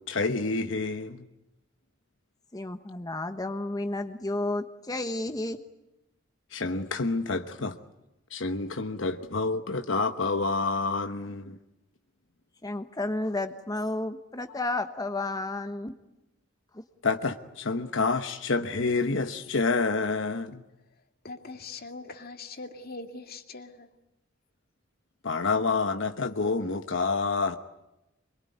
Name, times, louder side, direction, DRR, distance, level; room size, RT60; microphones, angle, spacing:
voice 1, 0.1-1.2 6.5-7.8 8.3-11.6 17.0-20.6 25.2-27.6, left 3 dB, 70° left, 1.1 m, -28 dB
voice 2, 2.5-5.6 12.6-15.9 16.7-16.8, left 2 dB, 20° left, 1.2 m, -32 dB
voice 3, 21.2-23.9, left 3 dB, 50° left, 2.2 m, -42 dB
24.5 x 22.5 x 9.5 m
head